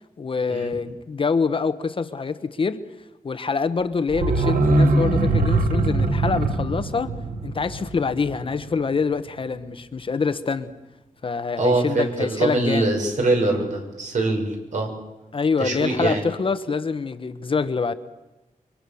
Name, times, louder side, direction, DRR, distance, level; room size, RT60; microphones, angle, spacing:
voice 1, 0.2-2.8 3.2-7.2 7.4-10.7 11.2-12.9 15.3-17.9, left 5 dB, 40° left, 1.0 m, -25 dB
sound 1, 4.1-8.9 9.1-9.2, right 2 dB, 80° right, 2.5 m, -22 dB
voice 2, 11.6-14.9 15.6-16.2, right 2 dB, 60° right, 6.5 m, -23 dB
29.0 x 24.0 x 7.1 m
wide cardioid pair, 165°, 14 cm